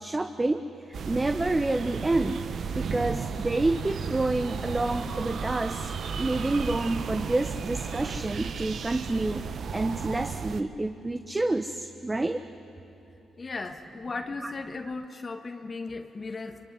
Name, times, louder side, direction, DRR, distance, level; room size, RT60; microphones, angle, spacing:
voice 1, 0.0-2.4 2.7-5.9 6.2-12.4 14.4-14.5, right 2 dB, 25° right, 7 dB, 1.2 m, -28 dB
sound 1, 0.9-10.6, right 6 dB, 65° right, 1.1 m, -34 dB
voice 2, 13.4-16.6, left 3 dB, 40° left, 5 dB, 1.7 m, -36 dB
25.0 x 23.5 x 9.8 m, 2.9 s
supercardioid pair, 50°, 0 cm